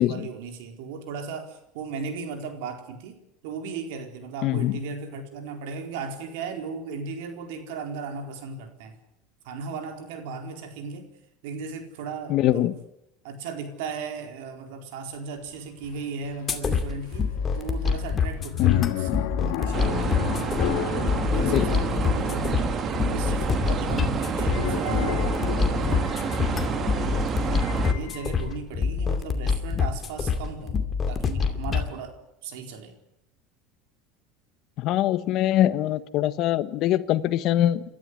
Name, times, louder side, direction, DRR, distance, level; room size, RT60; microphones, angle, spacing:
voice 1, 0.0-8.9 9.4-11.1 11.4-12.7 13.2-17.3 17.5-19.1 19.4-20.2 20.9-26.1 26.6-27.2 27.7-30.8 31.1-32.2 32.4-32.9, right 4 dB, 80° right, 6 dB, 4.4 m, -36 dB
voice 2, 4.4-4.8 12.3-12.7 18.6-18.9 21.4-21.7 34.8-37.8, left 13 dB, 55° left, 14 dB, 1.3 m, -23 dB
sound 1, 15.5-15.6 15.8-28.6, left 12 dB, 70° left, 2.2 m, -33 dB
sound 2, 16.5-31.9, left 5 dB, 25° left, 2.5 m, -27 dB
sound 3, 19.7-27.9, right 5 dB, 35° right, 2.0 m, -28 dB
28.0 x 13.5 x 9.9 m, 0.85 s
supercardioid pair, 130°, 0 cm